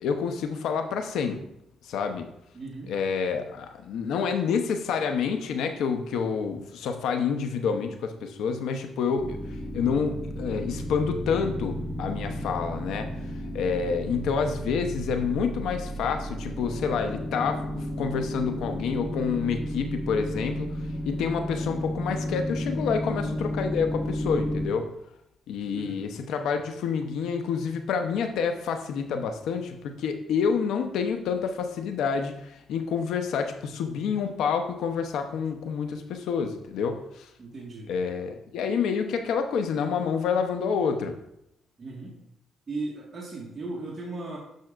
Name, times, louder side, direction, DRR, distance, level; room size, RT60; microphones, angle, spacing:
voice 1, 0.0-1.4 1.8-2.3 2.9-9.4 9.7-13.1 13.5-24.9 25.5-37.3 37.9-41.1, left 6 dB, 80° left, 6 dB, 0.8 m, -28 dB
voice 2, 2.5-2.9 25.7-26.1 37.4-37.9 41.8-42.2 42.7-44.4, right 2 dB, 30° right, -4 dB, 1.6 m, -37 dB
sound 1, 9.2-24.7, equal, 5° right, 1.5 m, -33 dB
9.3 x 5.7 x 2.5 m, 0.79 s
cardioid pair, 90°, 0 cm